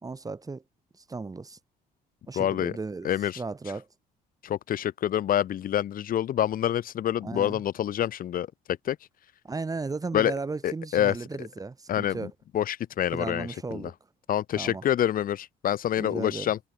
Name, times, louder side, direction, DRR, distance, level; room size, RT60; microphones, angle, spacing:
voice 1, 0.0-0.6 1.0-1.6 2.3-3.1 3.4-3.9 7.2-7.6 9.4-12.3 13.1-13.9 14.6-14.8 16.0-16.5, right 3 dB, 20° right, 5.1 m, -35 dB
voice 2, 2.3-2.8 3.0-3.4 4.4-9.0 10.1-10.3 10.6-11.5 11.9-13.9 14.3-16.6, left 11 dB, 55° left, 2.6 m, -27 dB
cardioid pair, 110°, 17 cm